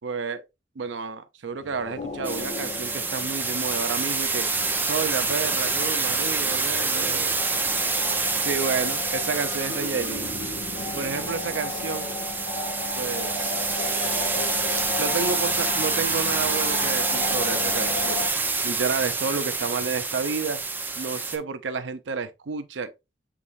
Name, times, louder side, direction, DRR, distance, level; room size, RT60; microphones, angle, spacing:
voice 1, 0.0-0.4 0.8-4.5 4.8-7.3 8.4-10.3 10.9-12.2 13.0-13.9 15.0-18.2 18.6-20.6 21.0-22.9, right 5 dB, 90° right, 0.6 m, -30 dB
sound 1, 1.6-18.3, left 3 dB, 40° left, 0.7 m, -35 dB
sound 2, 2.2-21.4, right 4 dB, 10° right, 0.6 m, -27 dB
sound 3, 13.8-14.9 16.3-16.4 17.7-18.0 18.9-19.0, right 7 dB, 50° right, 0.6 m, -40 dB
7.0 x 3.1 x 2.4 m
head